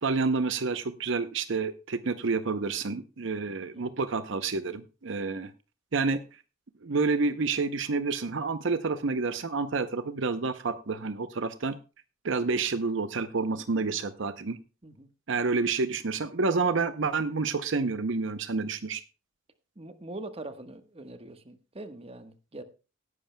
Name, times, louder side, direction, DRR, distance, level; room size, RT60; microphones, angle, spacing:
voice 1, 0.0-5.5 5.9-6.2 6.8-11.8 12.2-14.6 15.3-19.0, right 4 dB, 65° right, 0.7 m, -29 dB
voice 2, 19.8-22.6, right 2 dB, 30° right, 1.2 m, -43 dB
17.5 x 11.0 x 2.2 m
head